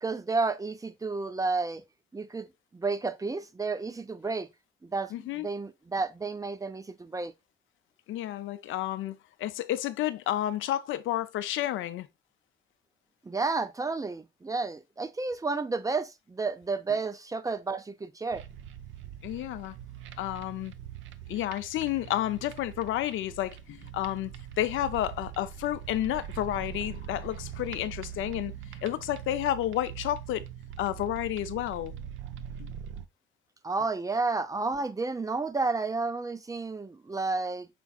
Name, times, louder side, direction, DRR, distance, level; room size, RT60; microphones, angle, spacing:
voice 1, 0.0-1.8 2.1-2.5 2.7-4.5 4.8-7.3 13.2-18.4 33.6-37.7, right 3 dB, 15° right, 0.5 m, -31 dB
voice 2, 5.1-5.5 8.1-12.1 19.2-19.7 20.2-20.7 21.3-28.5 28.8-30.4 30.8-31.9 32.6-32.7, left 13 dB, 80° left, 0.5 m, -31 dB
sound 1, 18.3-33.0, right 10 dB, 80° right, 0.5 m, -42 dB
6.0 x 3.6 x 2.3 m
cardioid pair, 90°, 20 cm